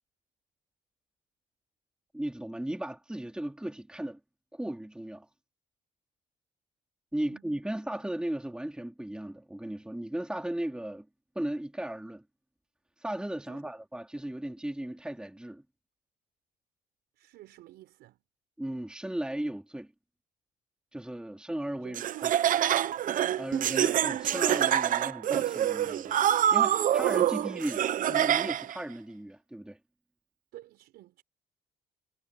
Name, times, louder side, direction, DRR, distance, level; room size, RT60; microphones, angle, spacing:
voice 1, 2.1-4.2 4.5-5.3 7.1-11.1 11.4-12.2 13.0-15.6 18.6-19.9 20.9-22.3 23.4-26.2 26.5-29.8, right 1 dB, 5° right, 3.7 m, -36 dB
voice 2, 17.2-18.2 21.3-21.4 21.8-23.1 27.7-27.8 30.5-31.2, right 15 dB, 80° right, 4.9 m, -50 dB
Laughter, 21.9-28.8, right 11 dB, 55° right, 0.9 m, -26 dB
cardioid pair, 110°, 17 cm